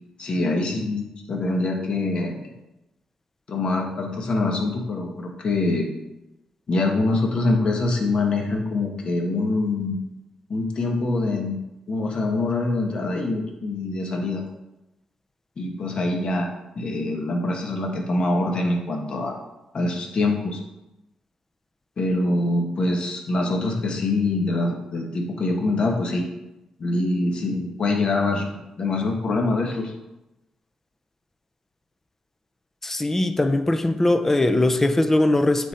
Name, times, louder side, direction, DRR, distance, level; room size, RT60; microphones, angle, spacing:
voice 1, 0.2-2.5 3.5-5.9 6.7-10.0 10.5-11.6 11.9-14.4 15.6-16.5 16.7-19.3 19.7-20.6 22.0-26.3 26.8-28.5 28.8-29.9, left 2 dB, 50° left, 1 dB, 1.4 m, -24 dB
voice 2, 32.8-35.7, left 1 dB, 15° left, 8 dB, 0.5 m, -20 dB
8.9 x 3.8 x 4.2 m, 0.94 s
cardioid pair, 110°, 2 cm